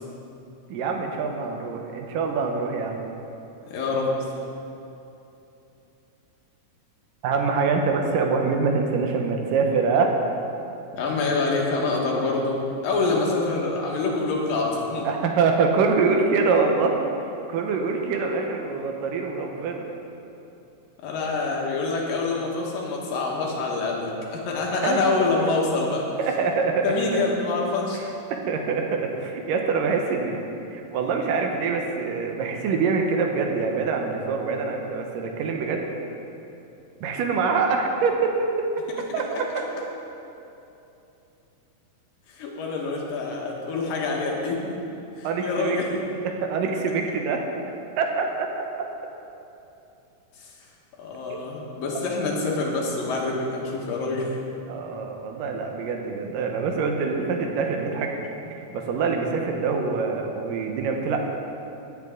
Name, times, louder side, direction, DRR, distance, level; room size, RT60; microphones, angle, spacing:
voice 1, 0.7-3.0 7.2-10.2 15.1-17.0 17.5-19.9 24.8-25.0 25.4-25.5 26.2-27.2 27.9-30.4 30.7-35.8 37.0-38.7 39.1-39.5 45.2-45.8 46.2-47.4 48.0-48.8 51.3-51.4 54.7-58.1 58.5-61.2, right 4 dB, 80° right, 2 dB, 2.6 m, -25 dB
voice 2, 3.7-4.2 10.9-15.1 21.0-26.1 26.8-28.0 42.3-44.6 45.2-45.9 50.4-50.5 51.0-54.3, left 3 dB, 85° left, -2 dB, 3.1 m, -26 dB
16.5 x 8.0 x 3.7 m, 2.9 s
omnidirectional pair, 3.9 m